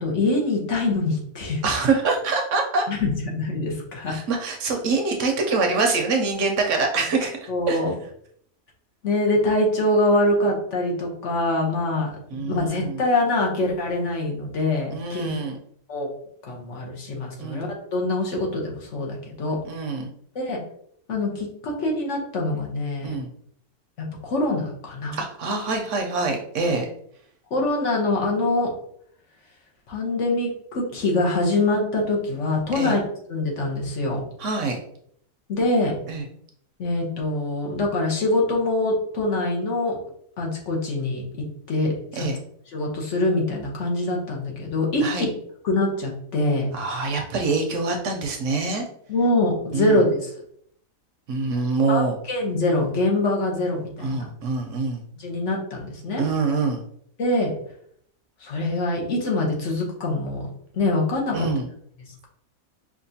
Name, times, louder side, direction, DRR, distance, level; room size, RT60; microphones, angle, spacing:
voice 1, 0.0-1.6 2.9-4.2 7.5-7.9 9.0-12.1 12.5-15.3 15.9-16.1 16.4-19.6 20.3-20.6 21.1-23.1 24.2-25.2 27.5-28.7 29.9-33.0 33.3-34.2 35.5-35.9 36.8-40.0 40.4-41.2 41.7-42.3 42.7-45.3 45.6-46.7 49.1-50.3 51.9-54.2 55.2-56.2 57.2-57.5 58.4-60.4 60.7-61.5, left 2 dB, 60° left, -1 dB, 1.1 m, -24 dB
voice 2, 1.6-2.8 4.1-7.8 12.3-13.0 14.9-15.6 17.4-17.6 19.6-20.1 23.0-23.3 25.1-26.9 32.7-33.0 34.4-34.8 36.1-36.2 42.2-42.4 45.0-45.2 46.7-48.8 49.7-50.0 51.3-52.2 54.0-55.0 56.2-56.8 61.3-61.7, right 4 dB, 70° right, 3 dB, 0.9 m, -25 dB
5.1 x 2.5 x 2.7 m, 0.66 s
omnidirectional pair, 1.5 m